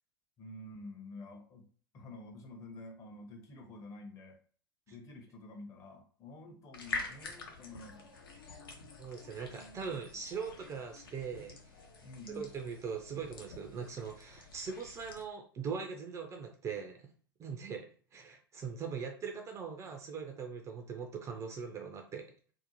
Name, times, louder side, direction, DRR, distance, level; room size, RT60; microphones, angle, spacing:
voice 1, 0.4-1.7 1.9-4.4 4.9-8.1 9.5-10.0 12.0-12.5, left 2 dB, 25° left, 3 dB, 0.7 m, -49 dB
sound 1, 6.7-15.2, left 4 dB, 70° left, 0.6 m, -46 dB
voice 2, 9.0-11.6 12.3-17.1 17.4-22.2, right 6 dB, 25° right, 3 dB, 0.4 m, -41 dB
2.6 x 2.1 x 2.8 m, 0.43 s
figure-of-eight pair, 85°, 12 cm